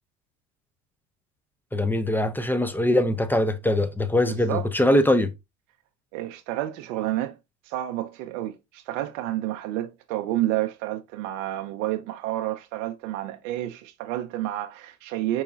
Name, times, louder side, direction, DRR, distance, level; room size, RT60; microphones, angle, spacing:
voice 1, 1.7-5.3, left 1 dB, 5° left, 0.3 m, -22 dB
voice 2, 4.2-4.6 6.1-7.3 7.7-15.4, right 14 dB, 80° right, 0.6 m, -30 dB
4.7 x 3.0 x 2.3 m
hypercardioid pair, 75°, 38 cm